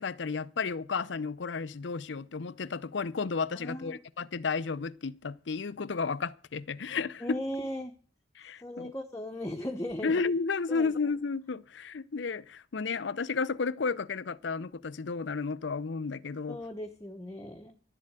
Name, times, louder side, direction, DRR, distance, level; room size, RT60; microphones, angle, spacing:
voice 1, 0.0-7.4 8.4-8.9 10.0-16.6, left 4 dB, 70° left, 0.6 m, -32 dB
voice 2, 3.6-4.0 7.2-7.9 8.6-10.1 10.7-10.9 16.5-17.8, left 1 dB, 15° left, 1.1 m, -37 dB
12.0 x 7.6 x 8.9 m
head